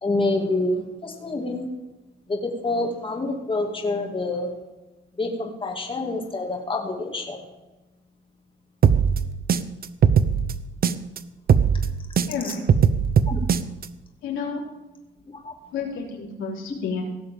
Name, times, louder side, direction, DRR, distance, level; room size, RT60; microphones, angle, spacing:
voice 1, 0.0-1.7 2.3-4.5 5.2-7.4 12.4-12.5 13.3-13.4 15.4-15.5, left 2 dB, 25° left, 1 dB, 2.4 m, -27 dB
sound 1, 8.8-11.2 11.5-13.9, right 7 dB, 50° right, 0.8 m, -19 dB
voice 2, 12.3-12.6 14.2-14.6 15.7-17.0, left 5 dB, 80° left, -1 dB, 3.3 m, -30 dB
17.0 x 6.5 x 7.4 m, 1.1 s
cardioid pair, 90°, 20 cm